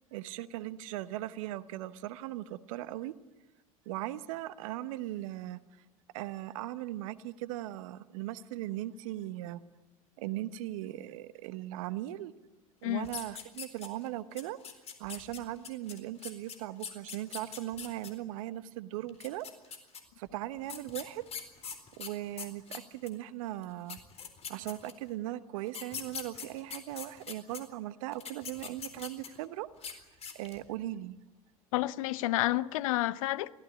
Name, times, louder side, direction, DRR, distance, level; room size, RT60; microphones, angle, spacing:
voice 1, 0.1-3.2 3.9-5.6 6.1-9.6 10.2-12.3 12.8-14.6 15.0-19.5 20.2-21.2 22.0-24.0 24.5-30.0 30.3-31.2, right 14 dB, 65° right, 1.1 m, -39 dB
sound 1, 13.0-14.1 14.4-18.1 19.1-20.0 20.7-23.2 23.6-23.7 23.9-25.1 25.7-27.6 28.1-29.4 29.8-29.9 30.2-30.6, left 7 dB, 35° left, 4.0 m, -42 dB
voice 2, 31.7-33.5, left 16 dB, 65° left, 0.8 m, -30 dB
24.0 x 17.0 x 9.9 m
hypercardioid pair, 75°, 18 cm